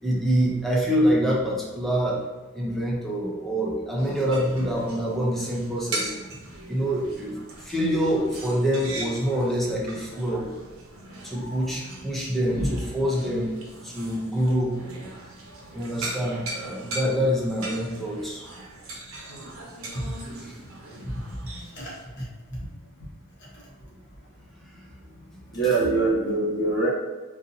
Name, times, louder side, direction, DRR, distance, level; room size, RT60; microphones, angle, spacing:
voice 1, 0.0-6.1 6.7-10.5 11.2-13.5 13.8-14.8 15.7-18.4 20.4-20.6 24.6-24.8, equal, ahead, -5 dB, 0.6 m, -26 dB
sound 1, 4.0-22.1, right 2 dB, 90° right, 0.8 m, -39 dB
voice 2, 11.4-11.8 12.5-12.7 19.9-20.0 21.7-22.6 25.5-26.9, right 3 dB, 55° left, -6 dB, 1.2 m, -25 dB
3.7 x 2.6 x 2.7 m, 1.3 s
head